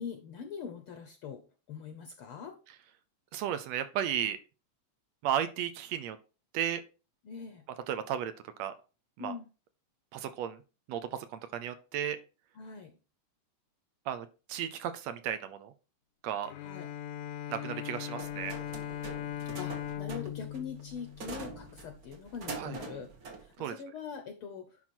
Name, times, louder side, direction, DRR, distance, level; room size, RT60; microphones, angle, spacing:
voice 1, 0.0-1.4 1.7-2.5 7.2-7.6 9.2-9.4 12.6-12.9 16.6-16.9 19.5-23.1 23.4-24.6, left 6 dB, 65° left, 6 dB, 1.5 m, -42 dB
voice 2, 3.3-4.4 5.2-6.2 6.5-6.8 7.9-8.3 8.6-8.7 9.2-9.3 10.1-10.6 10.9-12.2 14.1-15.7 16.2-16.5 17.5-18.6 22.6-22.8 23.6-23.8, right 10 dB, 75° right, 10 dB, 1.8 m, -34 dB
Bowed string instrument, 16.5-21.9, left 11 dB, 80° left, 2.1 m, -40 dB
sound 1, 18.2-23.6, right 4 dB, 50° right, 1.1 m, -44 dB
10.5 x 3.9 x 4.3 m, 0.33 s
omnidirectional pair, 3.3 m